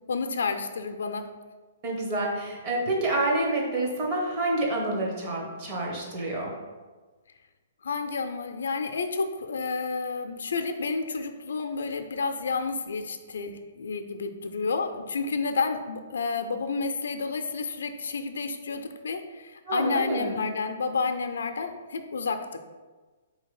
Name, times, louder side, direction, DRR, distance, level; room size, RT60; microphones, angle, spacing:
voice 1, 0.1-1.2 7.8-22.4, left 4 dB, 85° left, 7 dB, 0.4 m, -30 dB
voice 2, 1.8-6.5 19.7-20.4, right 2 dB, 25° right, -2 dB, 0.9 m, -28 dB
3.7 x 2.8 x 4.7 m, 1.3 s
hypercardioid pair, 170°, 0 cm